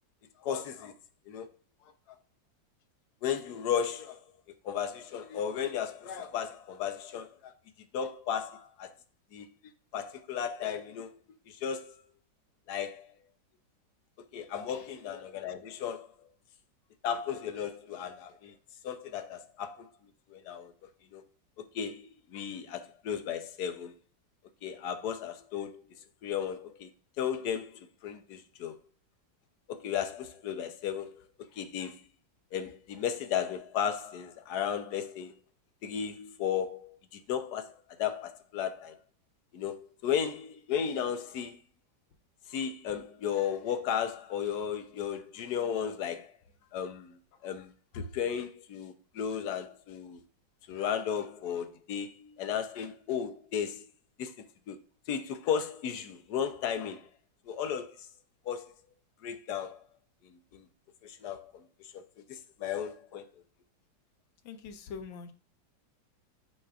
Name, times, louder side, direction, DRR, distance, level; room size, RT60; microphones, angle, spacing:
voice 1, 0.4-0.9 1.3-1.5 3.2-4.2 4.6-7.5 7.9-8.9 9.3-11.2 11.5-11.9 12.7-13.1 14.3-16.1 17.0-18.5 18.8-19.9 20.3-20.7 21.1-21.2 21.6-23.9 24.6-25.8 26.2-26.9 27.2-28.8 29.7-32.0 32.5-35.3 35.8-39.0 39.5-41.6 42.5-46.3 46.7-50.2 50.7-53.9 54.2-54.8 55.1-57.1 57.5-58.1 58.4-58.7 59.2-59.8 60.3-60.7 61.0-62.0 62.3-63.3, left 8 dB, 65° left, 1.1 m, -35 dB
voice 2, 64.4-65.3, left 5 dB, 85° left, 1.6 m, -43 dB
12.0 x 4.2 x 2.4 m
omnidirectional pair, 2.1 m